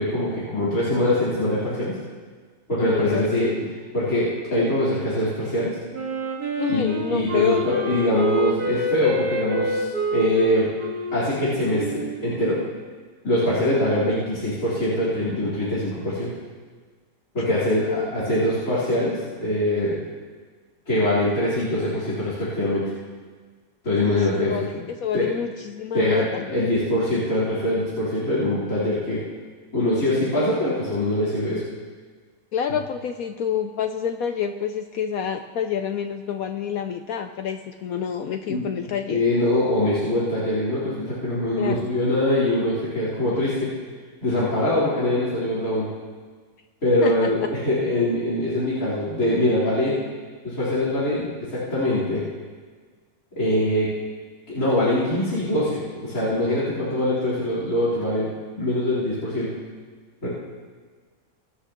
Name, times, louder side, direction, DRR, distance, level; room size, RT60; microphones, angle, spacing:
voice 1, 0.0-2.0 2.7-3.5 3.9-5.8 6.7-10.7 11.1-12.6 13.2-16.3 17.3-20.0 20.9-22.8 23.8-24.7 25.1-25.3 25.9-29.2 29.7-31.6 38.5-38.6 39.1-43.7 44.2-45.9 46.8-50.0 50.4-52.2 53.4-53.9 54.5-58.3 58.6-59.5 60.2-60.3, left 1 dB, 45° left, -10 dB, 4.3 m, -23 dB
voice 2, 2.8-3.7 6.6-7.8 17.5-18.1 24.0-24.1 24.4-26.5 32.5-39.2 41.6-41.9 47.0-47.3, left 8 dB, 70° left, 6 dB, 0.9 m, -27 dB
Wind instrument woodwind instrument, 5.9-12.7, right 1 dB, 55° right, 2.2 m, -28 dB
23.5 x 10.0 x 3.0 m, 1.5 s
omnidirectional pair, 2.0 m